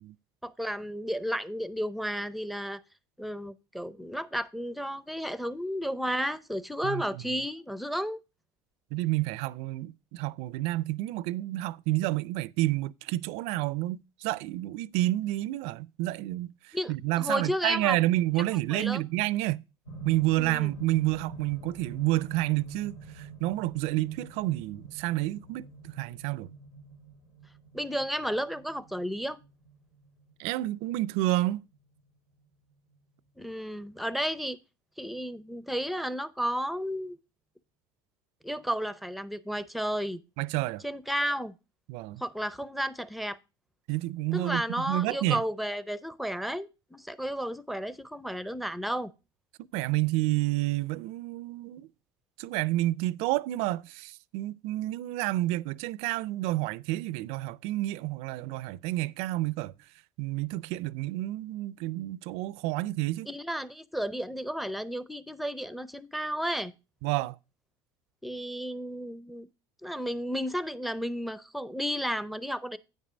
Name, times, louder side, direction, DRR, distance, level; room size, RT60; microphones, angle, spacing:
voice 1, 0.4-2.8 3.2-8.2 16.7-18.0 18.4-19.0 20.4-20.7 27.7-29.4 33.4-34.6 35.0-37.2 38.4-40.2 40.8-41.6 42.2-43.4 44.3-49.1 63.3-66.7 68.2-69.5 69.8-72.8, equal, ahead, 0.6 m, -33 dB
voice 2, 8.9-19.6 20.0-26.5 30.4-31.6 40.4-40.8 41.9-42.2 43.9-45.4 49.7-51.9 52.4-59.7 60.2-63.3 67.0-67.4, right 17 dB, 70° right, 0.4 m, -29 dB
sound 1, 19.9-32.0 32.9-33.0, right 4 dB, 85° left, 2.1 m, -46 dB
9.3 x 5.3 x 5.0 m
supercardioid pair, 100°, 11 cm